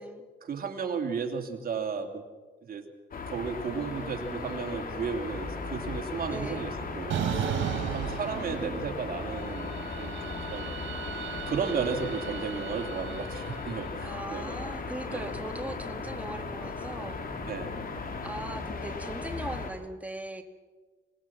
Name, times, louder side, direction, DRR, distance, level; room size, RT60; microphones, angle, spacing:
voice 1, 0.4-2.2 2.6-2.8 3.3-7.5 7.7-10.8 11.5-14.6 15.1-15.3 17.5-17.7, right 6 dB, 50° right, 4 dB, 2.9 m, -34 dB
sound 1, 3.1-19.7, left 4 dB, 45° left, 3.1 m, -37 dB
voice 2, 3.7-5.0 6.3-6.7 8.4-8.9 14.0-17.2 18.2-20.4, right 1 dB, 5° right, 5 dB, 2.3 m, -40 dB
Bowed string instrument, 5.1-13.1, right 1 dB, 25° left, 3.2 m, -46 dB
sound 2, 7.1-9.1 9.4-13.7, right 8 dB, 75° right, 4.1 m, -35 dB
25.5 x 20.0 x 6.0 m, 1.4 s
cardioid pair, 90°, 20 cm